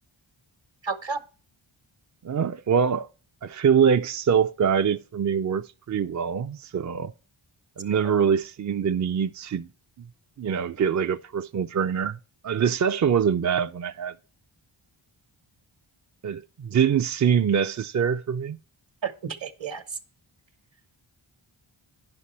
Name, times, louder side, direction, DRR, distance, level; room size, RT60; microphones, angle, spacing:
voice 1, 0.8-1.2 19.0-20.0, right 5 dB, 60° right, 1.2 m, -31 dB
voice 2, 2.2-3.1 3.4-7.1 7.8-9.7 10.4-12.2 12.4-14.1 16.2-18.6, right 7 dB, 40° right, 0.4 m, -24 dB
9.8 x 5.9 x 4.2 m
cardioid pair, 50°, 50 cm